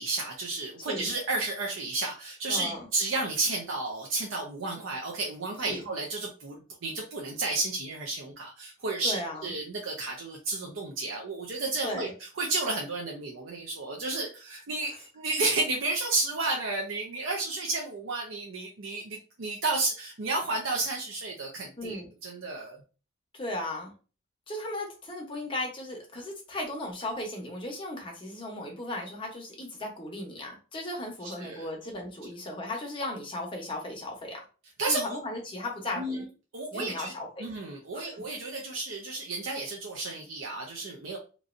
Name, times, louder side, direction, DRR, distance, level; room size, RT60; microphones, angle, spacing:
voice 1, 0.0-6.6 6.8-12.1 12.4-22.8 31.4-31.7 34.8-35.2 36.0-36.2 36.5-37.1 37.4-41.2, right 3 dB, 80° right, 0 dB, 0.6 m, -32 dB
voice 2, 0.8-1.1 2.5-2.9 5.6-5.9 9.0-9.5 11.8-12.1 14.9-15.0 21.8-22.1 23.3-23.9 24.5-34.4 34.9-36.2 36.7-37.5 37.9-38.2, left 1 dB, 25° left, 0 dB, 0.8 m, -36 dB
3.0 x 2.5 x 2.5 m, 0.35 s
head